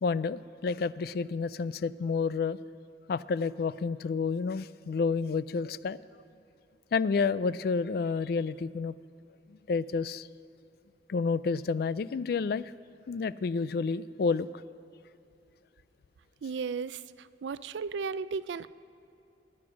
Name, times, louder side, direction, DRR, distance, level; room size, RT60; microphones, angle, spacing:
voice 1, 0.0-2.6 3.1-6.0 6.9-8.9 9.7-10.3 11.1-12.7 13.1-14.6, left 4 dB, 60° left, 17 dB, 0.3 m, -30 dB
voice 2, 16.4-17.0 17.4-18.7, right 5 dB, 85° right, 16 dB, 0.4 m, -34 dB
18.0 x 9.7 x 6.3 m, 2.7 s
head